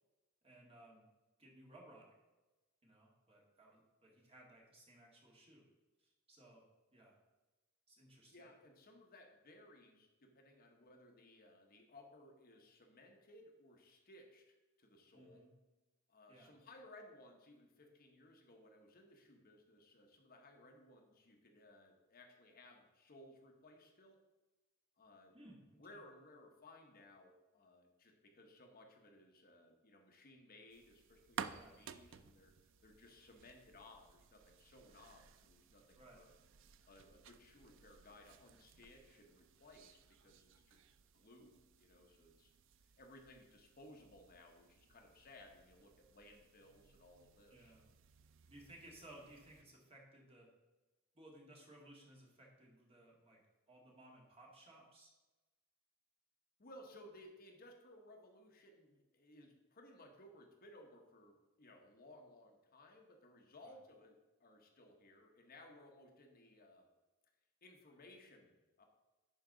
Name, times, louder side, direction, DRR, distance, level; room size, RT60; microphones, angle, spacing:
voice 1, 0.4-1.1 1.4-2.1 2.8-5.6 6.0-6.7 6.9-7.2 7.9-8.5 15.1-15.5 16.3-16.5 25.3-26.0 31.4-31.8 36.0-36.2 47.5-47.9 48.5-50.5 51.1-53.4 53.7-55.1 63.6-63.7, right 1 dB, 30° right, -2 dB, 2.0 m, -60 dB
voice 2, 8.3-15.5 16.1-24.2 25.0-25.4 25.8-32.5 32.8-36.3 36.9-40.8 41.1-42.5 43.0-47.7 56.6-66.9 67.6-68.8, left 1 dB, 45° left, 2 dB, 1.0 m, -61 dB
sound 1, 30.7-49.6, right 7 dB, 65° right, 0.4 m, -56 dB
11.0 x 4.7 x 3.9 m, 1.1 s
head